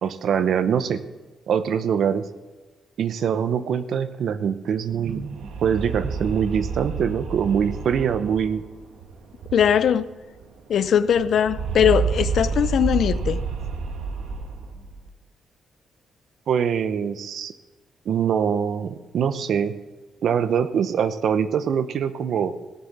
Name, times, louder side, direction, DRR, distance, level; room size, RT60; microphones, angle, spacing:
voice 1, 0.0-1.0 1.5-2.3 3.0-5.2 5.6-8.6 16.5-17.5 18.1-19.7 20.2-22.5, right 7 dB, 60° right, 0.8 m, -23 dB
sound 1, 4.8-10.1 10.4-10.5 10.7-15.1, right 4 dB, 80° right, 1.5 m, -30 dB
voice 2, 9.5-10.1 10.7-13.4, left 8 dB, 55° left, 0.5 m, -20 dB
16.5 x 7.1 x 7.2 m
cardioid pair, 165°, 0 cm